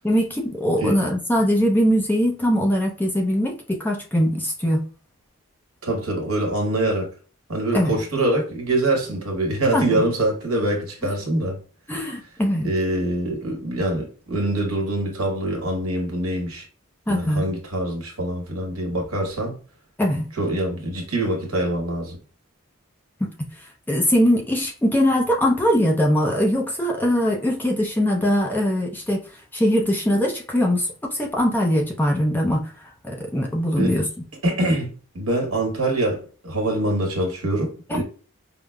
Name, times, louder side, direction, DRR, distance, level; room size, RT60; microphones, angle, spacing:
voice 1, 0.0-4.8 7.7-8.0 9.7-10.0 11.9-12.7 17.1-17.5 20.0-20.3 23.2-23.3 23.9-29.2 29.5-34.1 37.9-38.0, equal, 10° left, 0.5 m, -21 dB
voice 2, 5.8-7.1 7.5-11.6 12.6-16.6 17.1-19.6 20.4-22.2 33.8-34.0 34.4-38.0, right 1 dB, 85° right, 1.3 m, -24 dB
5.0 x 2.0 x 2.2 m
head